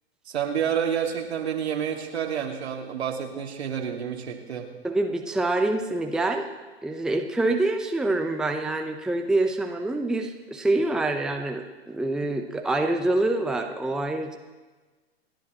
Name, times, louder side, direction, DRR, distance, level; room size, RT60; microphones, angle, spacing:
voice 1, 0.3-4.7, right 8 dB, 75° right, 2 dB, 2.3 m, -29 dB
voice 2, 4.8-6.4 6.8-14.4, right 2 dB, ahead, 3 dB, 0.8 m, -26 dB
28.0 x 10.5 x 3.0 m, 1.3 s
hypercardioid pair, 120°, 32 cm